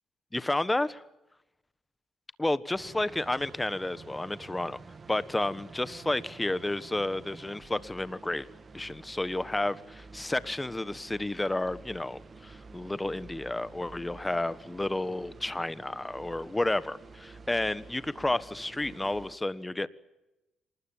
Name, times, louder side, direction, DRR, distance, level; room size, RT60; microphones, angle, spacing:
voice 1, 0.3-1.0 2.4-4.8 5.1-8.5 8.7-19.9, left 2 dB, 15° left, 16 dB, 1.3 m, -31 dB
sound 1, 2.7-19.4, right 4 dB, 35° right, 1.9 m, -50 dB
27.0 x 20.0 x 9.1 m, 0.96 s
cardioid pair, 90°, 0 cm